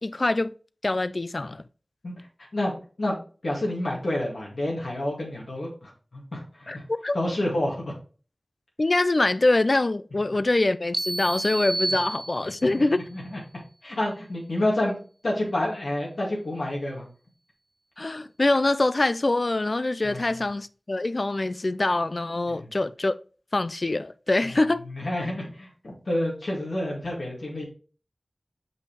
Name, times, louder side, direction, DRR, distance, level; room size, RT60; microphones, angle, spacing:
voice 1, 0.0-0.5 0.8-1.6 6.7-7.1 8.8-13.0 18.0-23.1 23.5-24.8, left 2 dB, 55° left, 0.4 m, -24 dB
voice 2, 2.5-3.2 3.4-6.8 7.1-7.9 12.4-13.4 13.8-15.0 15.2-17.1 20.0-20.2 22.5-22.7 24.9-27.6, left 1 dB, 85° left, 2.1 m, -29 dB
sound 1, 10.9-12.8, right 2 dB, 40° right, 0.5 m, -30 dB
6.4 x 5.5 x 3.2 m
wide cardioid pair, 45°, 0 cm